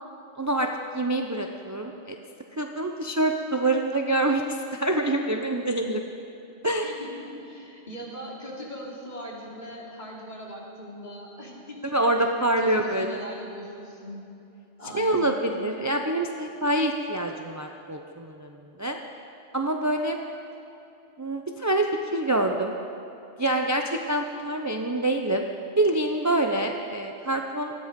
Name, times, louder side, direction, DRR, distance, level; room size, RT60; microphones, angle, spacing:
voice 1, 0.4-2.2 2.5-6.1 6.6-6.9 11.9-13.2 14.9-19.0 19.5-20.2 21.2-22.7 23.4-25.5 25.8-27.7, right 1 dB, 20° right, 3 dB, 0.6 m, -26 dB
voice 2, 6.8-12.3 12.6-14.2 14.8-15.4, equal, 45° left, -4 dB, 3.3 m, -40 dB
19.0 x 14.0 x 5.3 m, 2.8 s
omnidirectional pair, 1.1 m